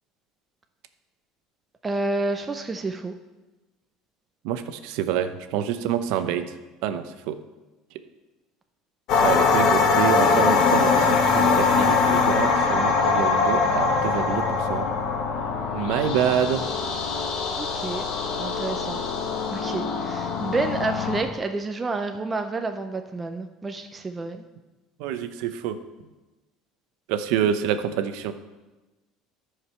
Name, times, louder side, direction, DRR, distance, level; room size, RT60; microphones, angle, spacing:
voice 1, 1.8-3.2 17.6-18.0 18.4-19.0 19.5-24.4, right 3 dB, 15° right, 6 dB, 0.4 m, -29 dB
voice 2, 4.4-6.5 6.8-7.4 9.2-14.9 15.7-16.7 25.0-25.8 27.1-28.3, right 9 dB, 70° right, 10 dB, 0.7 m, -27 dB
sound 1, 9.1-21.2, left 4 dB, 50° left, 1.2 m, -22 dB
13.0 x 4.9 x 5.6 m, 1.1 s
cardioid pair, 170°, 0 cm